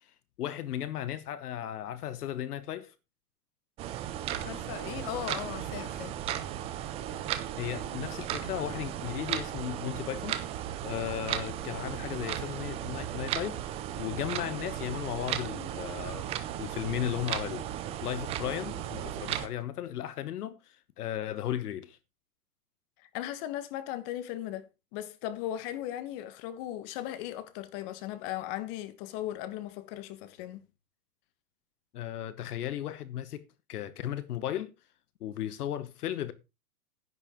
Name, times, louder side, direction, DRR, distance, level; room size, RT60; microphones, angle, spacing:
voice 1, 0.1-2.9 7.6-10.4 10.8-13.6 14.0-16.3 16.6-17.7 18.0-22.0 31.9-34.7 35.2-36.3, left 11 dB, 70° left, 1.1 m, -35 dB
sound 1, 3.8-19.5, right 11 dB, 15° right, 0.5 m, -36 dB
voice 2, 4.4-6.1 23.0-30.6, left 12 dB, 35° left, 1.2 m, -37 dB
10.5 x 9.7 x 3.6 m
hypercardioid pair, 135°, 47 cm